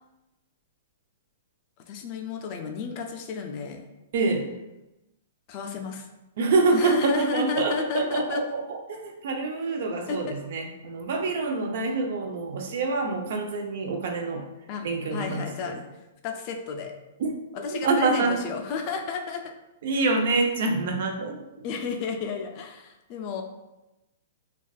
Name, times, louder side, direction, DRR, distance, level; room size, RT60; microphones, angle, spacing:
voice 1, 1.9-3.8 5.5-6.1 6.7-8.4 10.1-10.2 14.7-14.8 15.1-15.8 16.2-17.0 17.6-19.5 21.6-23.4, left 6 dB, 40° left, 4 dB, 0.3 m, -32 dB
voice 2, 4.1-4.5 6.4-14.5 14.8-15.7 17.2-17.3 17.7-18.4 19.8-21.6, right 3 dB, 60° right, 3 dB, 0.4 m, -26 dB
2.5 x 2.2 x 2.3 m, 0.97 s
hypercardioid pair, 145°, 0 cm